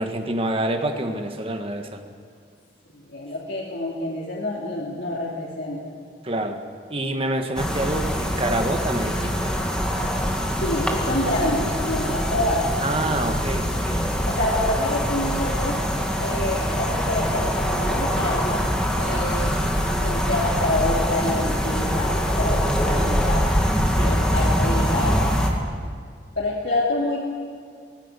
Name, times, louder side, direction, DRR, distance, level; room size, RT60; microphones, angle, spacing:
voice 1, 0.0-2.0 6.2-6.6 6.9-9.5 12.8-14.1 19.1-19.3 23.9-24.2, right 1 dB, 35° right, 5 dB, 1.8 m, -27 dB
voice 2, 2.9-5.8 10.6-12.7 14.2-15.8 16.2-18.6 19.0-19.5 20.0-23.4 24.0-25.3 26.4-27.3, left 1 dB, 75° left, -4 dB, 3.0 m, -27 dB
sound 1, 7.6-25.5, equal, 5° left, 2.2 m, -24 dB
17.5 x 16.0 x 10.0 m, 2.2 s
head